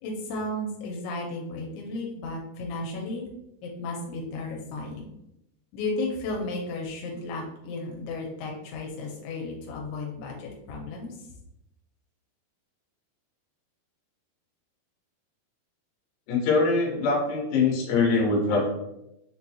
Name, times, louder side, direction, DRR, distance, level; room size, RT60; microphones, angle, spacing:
voice 1, 0.0-3.3 3.6-5.1 5.7-11.2, left 2 dB, 85° left, -1 dB, 2.7 m, -34 dB
voice 2, 16.3-18.8, left 3 dB, 70° left, -2 dB, 2.4 m, -23 dB
6.4 x 2.2 x 2.7 m, 0.86 s
omnidirectional pair, 4.8 m